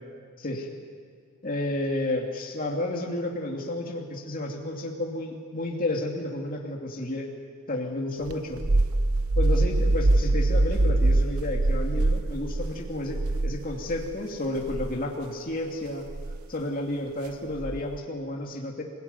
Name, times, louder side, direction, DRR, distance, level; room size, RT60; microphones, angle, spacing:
voice 1, 0.4-0.7 1.4-7.3 7.7-8.6 9.4-13.2 13.4-16.0 16.5-18.8, left 1 dB, 40° left, 0 dB, 2.7 m, -31 dB
sound 1, 8.3-14.1 14.6-14.9 16.1-16.4 17.6-18.0, right 2 dB, 75° right, 0.9 m, -24 dB
26.5 x 17.5 x 9.7 m, 2.1 s
head